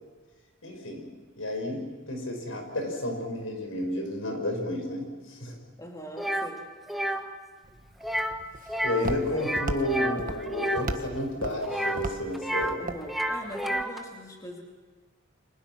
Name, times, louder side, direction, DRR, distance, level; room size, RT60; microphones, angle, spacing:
voice 1, 0.6-1.1 1.4-5.6 8.8-12.8, left 1 dB, 80° left, 4 dB, 6.2 m, -31 dB
voice 2, 5.8-6.7 9.3-9.5 12.8-14.6, equal, 15° left, 0 dB, 2.9 m, -42 dB
sound 1, 6.2-6.5 6.9-7.2 8.0-8.4 8.7-9.1 9.4-10.9 11.6-12.8 13.0-14.0, right 1 dB, ahead, 1.3 m, -30 dB
Walk footsteps, 7.6-13.8, right 2 dB, 45° right, 1.4 m, -38 dB
30.0 x 25.5 x 6.2 m, 1.4 s
head